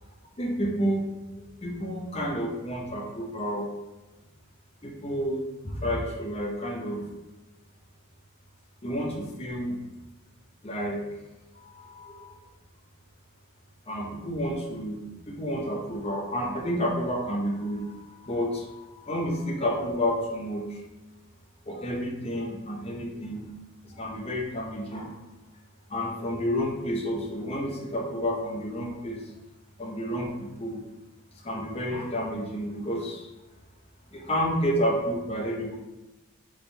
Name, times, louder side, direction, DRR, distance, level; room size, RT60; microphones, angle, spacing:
voice 1, 0.4-1.1 1.3-3.6 4.8-7.0 8.8-9.8 10.6-11.0 11.5-12.4 13.9-20.8 21.7-23.5 23.8-25.2 25.9-29.2 29.8-30.8 31.4-33.3 34.1-35.8, equal, 30° left, -1 dB, 0.7 m, -30 dB
4.3 x 3.6 x 3.3 m, 1.0 s
head